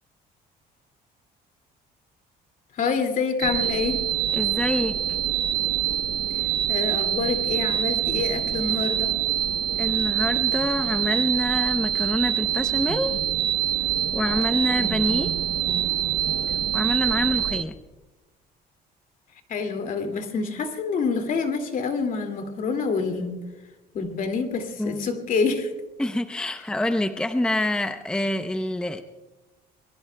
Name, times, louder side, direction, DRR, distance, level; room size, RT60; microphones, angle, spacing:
voice 1, 2.7-4.0 6.3-9.1 19.5-23.4 23.9-25.7, left 4 dB, 55° left, 6 dB, 2.3 m, -27 dB
sound 1, 3.4-17.6, right 12 dB, 70° right, 0.9 m, -25 dB
voice 2, 4.3-4.9 9.8-13.2 14.1-15.3 16.7-17.7 24.8-25.1 26.0-29.0, left 1 dB, 5° left, 9 dB, 0.6 m, -26 dB
27.5 x 21.5 x 2.2 m, 1.1 s
cardioid pair, 110°, 17 cm